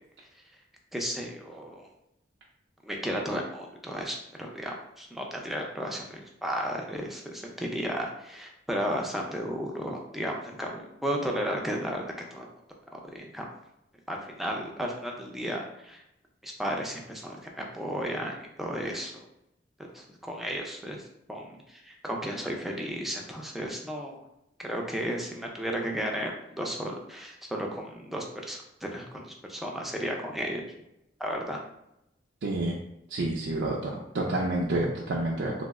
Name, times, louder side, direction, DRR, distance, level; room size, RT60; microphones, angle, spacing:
voice 1, 0.9-1.9 2.8-12.5 13.1-13.5 14.1-16.0 16.4-19.1 19.9-21.0 21.3-24.2 24.6-30.6 31.2-31.6, equal, ahead, 0 dB, 0.4 m, -34 dB
voice 2, 32.4-32.8 33.1-35.6, right 2 dB, 80° right, -3 dB, 0.4 m, -29 dB
2.9 x 2.0 x 3.5 m, 0.84 s
head